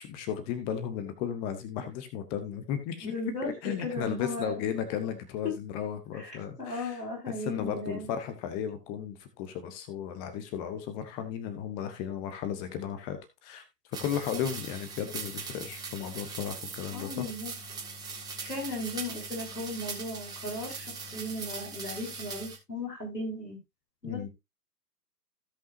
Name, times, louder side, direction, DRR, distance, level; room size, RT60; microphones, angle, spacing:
voice 1, 0.0-3.1 3.6-7.0 7.5-13.6 14.0-17.2 24.0-24.3, left 9 dB, 10° left, 9 dB, 0.6 m, -35 dB
voice 2, 3.0-4.5 5.4-5.5 6.2-8.1 16.9-17.5 18.4-20.9 21.1-23.6 24.0-24.2, left 1 dB, 85° left, -3 dB, 7.0 m, -36 dB
sound 1, 13.9-22.6, right 4 dB, 10° right, 1.9 m, -40 dB
16.0 x 5.5 x 2.6 m, 0.21 s
figure-of-eight pair, 120°, 48 cm